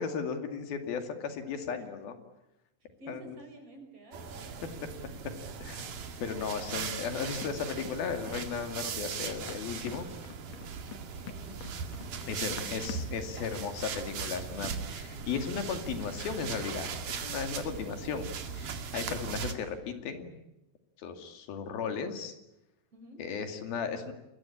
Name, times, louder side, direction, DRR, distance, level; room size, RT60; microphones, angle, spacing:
voice 1, 0.0-2.2 3.1-3.4 5.6-5.8 6.2-10.1 12.3-20.4 21.0-22.3 23.2-24.1, left 6 dB, 80° left, 7 dB, 4.3 m, -36 dB
voice 2, 3.0-4.3 11.2-11.6 12.2-13.0 22.9-23.2, right 2 dB, 40° right, 5 dB, 6.8 m, -50 dB
sound 1, 4.1-19.5, right 6 dB, 60° right, 3.6 m, -39 dB
Run, 7.4-13.2, left 9 dB, 55° left, 2.1 m, -48 dB
29.0 x 22.0 x 8.7 m, 0.92 s
omnidirectional pair, 4.2 m